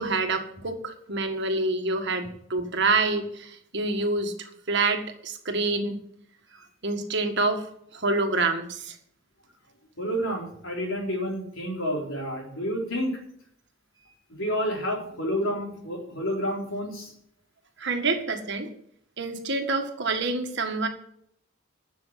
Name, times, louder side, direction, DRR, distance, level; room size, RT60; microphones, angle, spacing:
voice 1, 0.0-6.0 6.8-7.6 7.9-9.0 17.8-18.7 19.2-20.9, right 3 dB, 55° right, 5 dB, 1.7 m, -27 dB
voice 2, 10.0-13.1 14.3-17.1, equal, 70° left, -1 dB, 3.9 m, -29 dB
11.5 x 7.1 x 7.5 m, 0.68 s
head